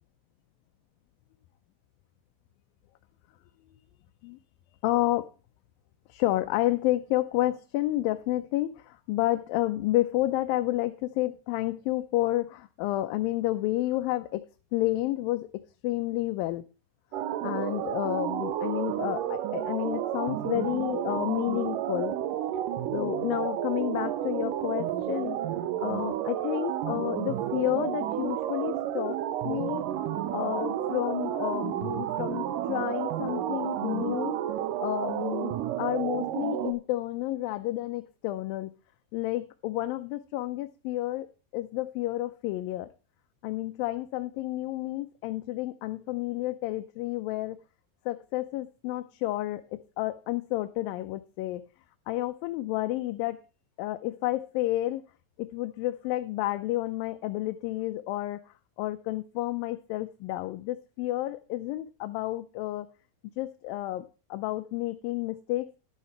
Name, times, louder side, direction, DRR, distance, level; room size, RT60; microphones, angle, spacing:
voice 1, 4.8-5.3 6.1-14.4 14.7-16.6 17.4-22.2 22.9-25.4 25.8-29.2 29.4-29.9 30.3-34.4 34.8-38.7 39.1-41.3 41.5-42.9 43.4-47.6 48.1-51.6 52.1-53.4 53.8-55.0 55.4-62.9 63.4-64.1 64.3-65.8, left 16 dB, 90° left, 8 dB, 2.4 m, -30 dB
sound 1, 17.1-36.7, right 11 dB, 75° right, 2.4 m, -31 dB
12.0 x 8.5 x 4.5 m, 0.33 s
omnidirectional pair, 4.0 m